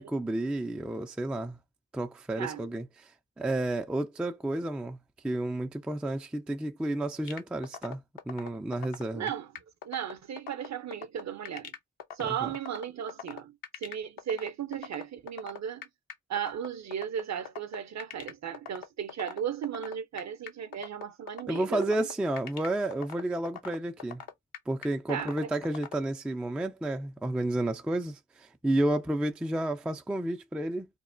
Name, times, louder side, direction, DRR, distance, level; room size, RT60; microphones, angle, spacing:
voice 1, 0.0-1.6 1.9-5.0 5.2-9.3 12.4-12.5 21.5-24.2 24.7-30.9, right 1 dB, 5° right, 0.3 m, -31 dB
sound 1, 7.3-25.9, left 8 dB, 60° left, 0.7 m, -41 dB
voice 2, 9.1-9.5 9.8-11.7 12.1-15.9 16.3-22.1 25.1-25.5, right 9 dB, 45° right, 0.6 m, -36 dB
3.1 x 2.0 x 2.5 m
hypercardioid pair, 40°, 40 cm